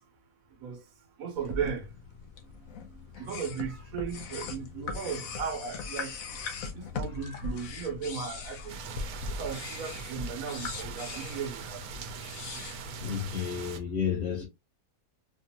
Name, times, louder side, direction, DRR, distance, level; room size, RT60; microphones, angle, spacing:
voice 1, 1.2-1.9 3.2-6.2 6.7-8.8 9.3-12.0, right 6 dB, 70° right, 1.3 m, -36 dB
sound 1, 1.4-13.4, left 4 dB, 70° left, 1.2 m, -40 dB
sound 2, 8.7-13.8, right 6 dB, 90° right, 1.2 m, -42 dB
voice 2, 13.0-14.4, left 7 dB, 45° left, 1.9 m, -31 dB
4.4 x 2.5 x 2.8 m
omnidirectional pair, 1.5 m